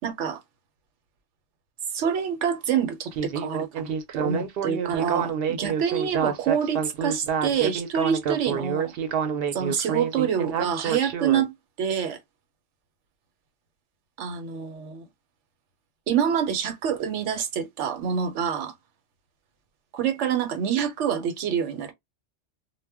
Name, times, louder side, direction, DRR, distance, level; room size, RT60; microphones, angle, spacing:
voice 1, 0.0-0.4 1.9-8.9 9.5-12.2 14.2-15.1 16.1-18.7 19.9-21.9, right 8 dB, 85° right, 1.0 m, -26 dB
Speech synthesizer, 3.1-11.4, right 7 dB, 60° right, 0.7 m, -28 dB
2.1 x 2.1 x 3.4 m
omnidirectional pair, 1.2 m